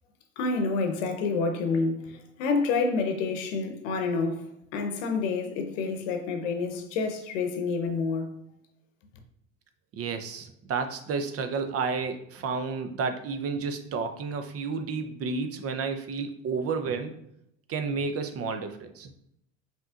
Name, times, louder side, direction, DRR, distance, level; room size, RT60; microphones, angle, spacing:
voice 1, 0.4-4.4 4.7-8.3, left 4 dB, 70° left, 0.8 m, -28 dB
voice 2, 9.9-17.2 17.7-19.1, right 4 dB, 40° right, 0.6 m, -31 dB
5.4 x 3.0 x 2.4 m
hypercardioid pair, 70°, 39 cm